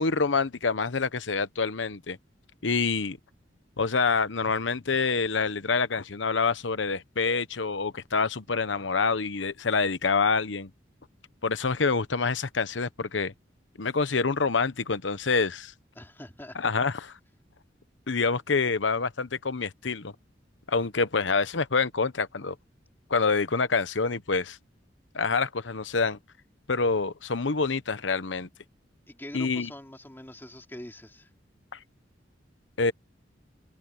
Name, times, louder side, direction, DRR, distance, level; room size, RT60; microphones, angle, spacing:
voice 1, 0.0-2.2 2.6-3.2 3.8-10.7 11.4-13.3 13.8-15.7 16.6-17.1 18.1-20.1 20.7-22.5 23.1-24.6 25.1-26.2 26.7-28.5 29.3-29.7 31.7-31.8 32.8-32.9, left 4 dB, 80° left, 1.0 m, -26 dB
voice 2, 15.9-16.7 29.1-31.3, left 1 dB, 10° left, 2.7 m, -43 dB
head